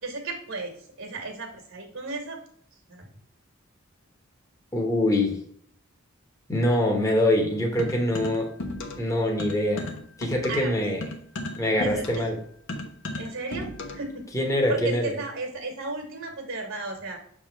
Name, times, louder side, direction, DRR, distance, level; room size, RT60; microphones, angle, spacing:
voice 1, 0.0-2.4 2.9-3.0 10.5-10.7 11.8-12.3 13.2-14.3 14.7-17.2, right 3 dB, 65° right, 3 dB, 1.7 m, -34 dB
voice 2, 4.7-5.4 6.5-8.5 9.0-9.9 10.2-11.1 11.6-12.4 14.3-15.1, left 1 dB, 15° left, 1 dB, 1.3 m, -24 dB
sound 1, 7.8-9.1 9.4-14.1, left 1 dB, 65° left, 1.1 m, -35 dB
6.6 x 3.6 x 4.5 m, 0.63 s
head